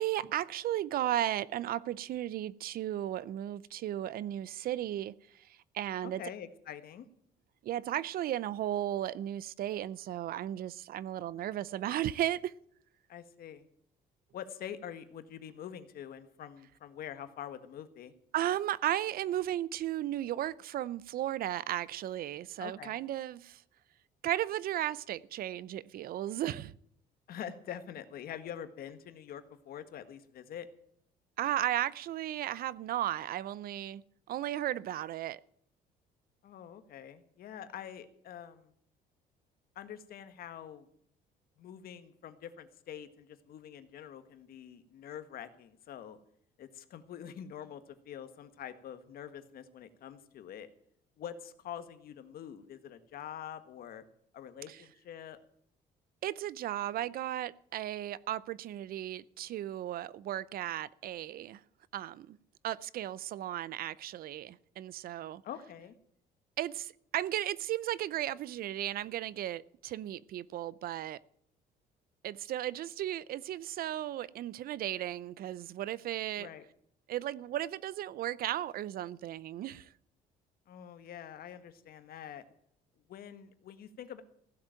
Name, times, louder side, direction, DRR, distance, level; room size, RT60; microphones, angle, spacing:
voice 1, 0.0-6.2 7.6-12.5 18.3-23.6 24.2-26.8 31.4-35.4 54.7-54.8 56.2-61.6 61.9-62.4 62.6-65.4 66.6-71.2 72.2-76.5 77.1-79.9, right 12 dB, 60° right, 0.6 m, -35 dB
voice 2, 6.0-7.0 13.1-13.7 14.3-18.1 22.6-23.0 27.3-30.7 36.4-38.7 39.7-40.9 41.6-46.2 46.6-50.7 51.2-54.0 54.3-55.4 65.4-65.9 76.4-76.6 80.7-82.4 83.1-84.2, left 9 dB, 60° left, 1.6 m, -45 dB
16.0 x 7.3 x 9.0 m
cardioid pair, 110°, 17 cm